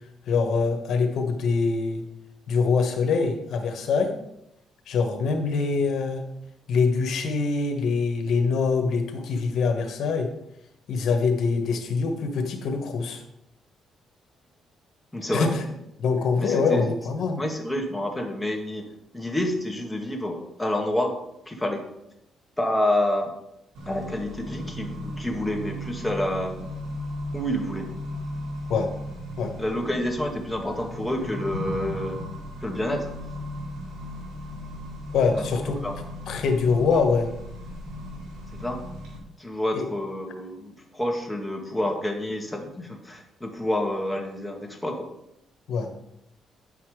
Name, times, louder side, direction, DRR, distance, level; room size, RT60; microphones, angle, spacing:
voice 1, 0.3-2.0 2.5-4.1 4.9-6.2 6.7-10.3 10.9-13.2 15.3-15.6 16.0-17.4 28.7-28.9 29.4-29.5 35.1-35.8 36.3-37.3 39.7-39.8 45.7-45.9, left 4 dB, 70° left, 5 dB, 1.5 m, -24 dB
voice 2, 15.1-15.5 16.4-16.9 17.4-21.1 21.4-21.9 22.6-23.3 23.8-26.6 27.3-27.9 29.6-32.2 32.6-33.1 35.4-35.5 35.8-35.9 38.5-38.8 39.4-45.1, left 1 dB, 10° left, 2 dB, 1.8 m, -28 dB
Accelerating revving vroom, 23.7-39.2, equal, 85° right, 2.8 m, -36 dB
9.6 x 5.7 x 4.9 m, 0.82 s
cardioid pair, 90°, 0 cm